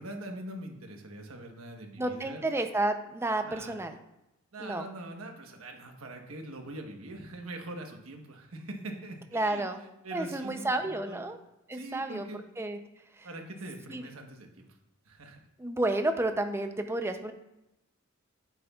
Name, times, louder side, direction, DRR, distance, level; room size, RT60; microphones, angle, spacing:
voice 1, 0.0-2.5 3.4-3.8 4.5-9.6 10.0-11.2 11.7-12.4 13.2-14.7 15.0-15.4, right 1 dB, 85° right, 3 dB, 1.2 m, -43 dB
voice 2, 2.0-4.0 4.6-4.9 9.3-9.8 10.1-11.4 11.7-12.3 12.6-12.8 13.2-13.3 13.9-14.0 15.6-17.3, right 2 dB, 10° right, 6 dB, 0.5 m, -31 dB
8.6 x 8.1 x 2.4 m, 0.91 s
head